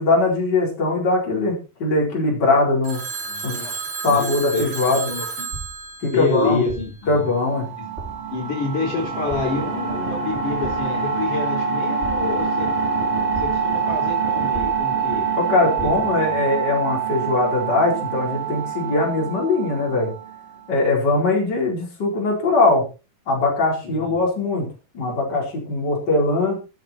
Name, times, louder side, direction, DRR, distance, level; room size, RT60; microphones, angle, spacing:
voice 1, 0.0-3.0 3.4-3.7 4.0-5.0 6.0-6.6 7.1-7.7 15.4-20.1 20.7-22.9 23.3-24.7 24.9-26.6, left 2 dB, 30° left, -1 dB, 5.1 m, -21 dB
Telephone, 2.8-7.1, right 5 dB, 50° right, 4.0 m, -32 dB
voice 2, 3.2-3.7 4.1-5.5 6.1-7.3 7.7-7.8 8.3-12.7 13.4-15.3 15.8-16.4 23.8-24.2, left 4 dB, 60° left, 1 dB, 5.5 m, -28 dB
sound 1, 5.5-6.0 6.7-7.1 7.9-8.3 9.3-9.7 10.6-11.0 12.0-12.6 13.3-13.8 14.5-15.1 15.8-16.2, right 2 dB, 20° right, 5.3 m, -36 dB
sound 2, 7.2-20.6, right 6 dB, 70° right, 6.5 m, -25 dB
13.0 x 11.5 x 4.4 m, 0.32 s
omnidirectional pair, 4.1 m